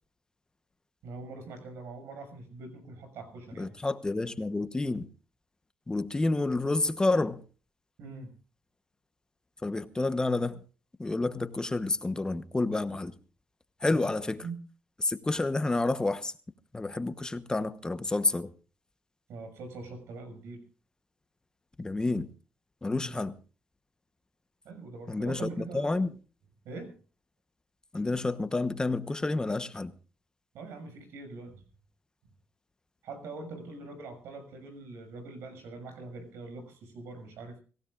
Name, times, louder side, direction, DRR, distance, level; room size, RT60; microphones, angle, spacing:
voice 1, 1.0-3.7 8.0-8.3 13.9-14.1 14.4-14.6 19.3-20.6 22.9-23.1 24.6-25.9 26.6-27.0 30.5-31.6 33.0-37.6, right 3 dB, 90° right, 6.3 m, -43 dB
voice 2, 3.6-5.1 5.9-7.4 9.6-10.6 11.0-13.1 13.8-14.4 15.0-16.3 16.7-18.5 21.8-22.3 22.8-23.4 25.1-25.5 25.7-26.1 27.9-29.9, left 2 dB, 20° left, 1.0 m, -29 dB
25.5 x 16.0 x 2.5 m
cardioid pair, 100°, 4 cm